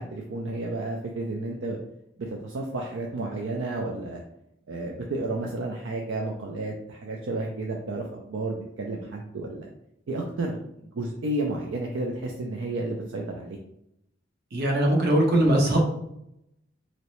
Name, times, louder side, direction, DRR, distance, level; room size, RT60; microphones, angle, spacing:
voice 1, 0.0-1.8 2.2-4.2 4.7-9.7 10.1-13.6, right 2 dB, 75° right, 0 dB, 0.4 m, -32 dB
voice 2, 14.5-15.8, right 1 dB, 60° right, 0 dB, 0.9 m, -21 dB
3.0 x 2.8 x 3.0 m, 0.79 s
head